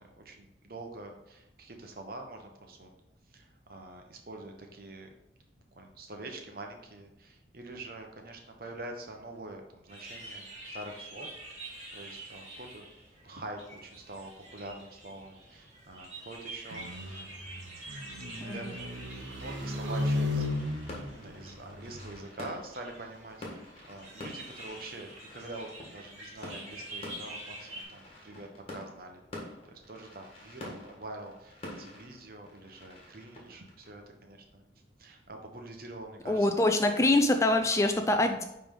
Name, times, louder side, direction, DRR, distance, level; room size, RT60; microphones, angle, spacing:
voice 1, 0.0-2.9 3.3-5.1 5.7-12.8 13.2-17.7 18.4-18.9 19.3-20.4 21.0-34.6 35.0-36.7, right 2 dB, 50° right, 3 dB, 1.0 m, -45 dB
sound 1, 9.9-27.8, right 1 dB, 35° right, 2.2 m, -47 dB
sound 2, 16.7-22.2, left 2 dB, 80° right, 0.9 m, -35 dB
voice 2, 18.4-18.7 36.3-38.4, left 2 dB, 15° left, 6 dB, 0.3 m, -25 dB
sound 3, 19.4-34.7, left 1 dB, 30° left, 1.5 m, -48 dB
9.6 x 3.4 x 3.8 m, 0.91 s
head